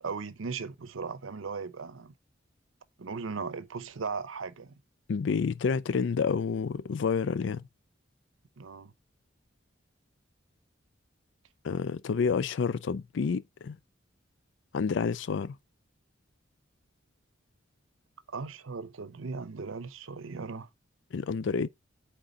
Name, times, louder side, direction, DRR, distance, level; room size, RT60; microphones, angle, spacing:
voice 1, 0.0-2.1 3.0-4.7 8.6-8.9 18.3-20.7, right 4 dB, 85° right, 0.7 m, -37 dB
voice 2, 5.1-7.7 11.6-13.8 14.7-15.6 21.1-21.7, left 5 dB, 70° left, 0.4 m, -29 dB
8.3 x 3.8 x 3.8 m
head